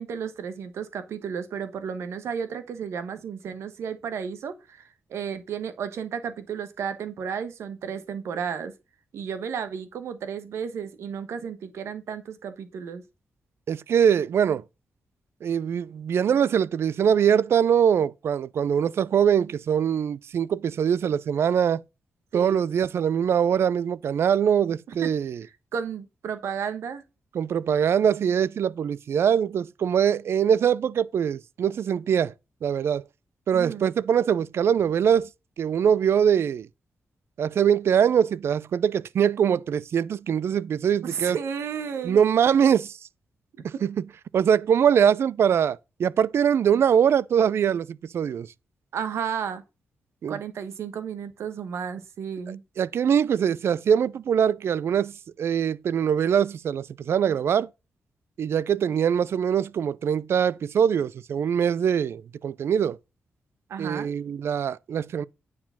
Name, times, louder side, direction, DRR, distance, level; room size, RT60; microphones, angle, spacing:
voice 1, 0.0-8.7 9.1-13.0 22.3-22.6 25.0-25.1 25.4-27.0 33.5-33.9 41.0-42.2 43.6-43.7 48.9-49.6 50.3-52.6 63.7-64.1, right 7 dB, 85° right, 1.2 m, -33 dB
voice 2, 13.7-14.6 15.4-21.8 22.3-25.4 27.3-32.3 32.6-33.0 33.5-35.3 35.6-36.7 37.4-41.4 42.0-42.9 43.6-44.0 44.3-48.5 50.2-50.4 52.8-57.7 58.4-63.0 63.8-65.2, right 8 dB, 70° right, 0.4 m, -23 dB
9.6 x 4.7 x 5.6 m
cardioid pair, 90°, 4 cm